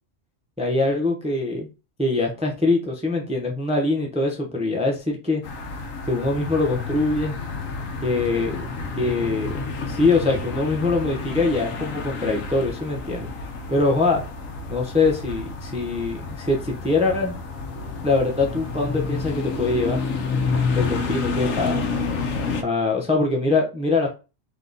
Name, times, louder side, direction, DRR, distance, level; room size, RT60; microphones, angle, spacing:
voice 1, 0.6-1.7 2.0-5.4 6.1-7.3 8.0-8.6 9.0-13.3 13.7-14.2 14.7-17.4 18.0-20.0 20.7-21.8 22.6-24.1, left 3 dB, 10° right, 1 dB, 0.5 m, -23 dB
sound 1, 5.4-22.6, left 4 dB, 80° left, 1.1 m, -29 dB
3.5 x 2.9 x 3.9 m, 0.31 s
omnidirectional pair, 1.3 m